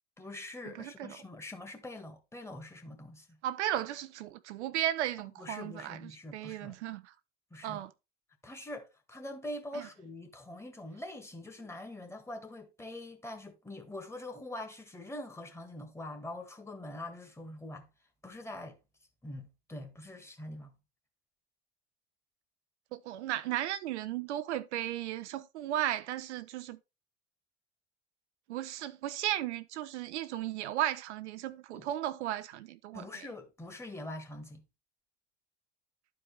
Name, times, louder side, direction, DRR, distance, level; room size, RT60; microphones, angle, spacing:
voice 1, 0.2-3.4 5.4-6.8 7.5-7.8 8.4-17.9 18.2-18.8 19.2-20.8 31.7-31.9 32.9-34.6, left 1 dB, 5° left, 1.8 m, -44 dB
voice 2, 0.8-1.1 3.4-7.1 7.6-7.9 9.7-9.8 22.9-26.8 28.5-33.3, right 12 dB, 65° right, 0.7 m, -35 dB
12.0 x 4.7 x 3.4 m
hypercardioid pair, 90°, 37 cm